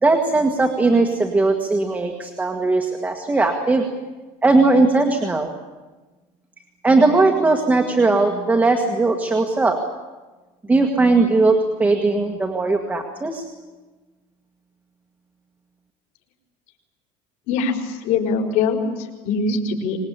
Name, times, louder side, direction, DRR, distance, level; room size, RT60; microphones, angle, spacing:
voice 1, 0.0-3.8 4.4-5.5 6.8-9.8 10.7-13.4, right 3 dB, 10° right, 2 dB, 1.7 m, -18 dB
voice 2, 17.5-18.8 19.2-20.0, left 5 dB, 70° left, 0 dB, 5.3 m, -22 dB
25.5 x 20.5 x 8.9 m, 1.2 s
cardioid pair, 180°, 16 cm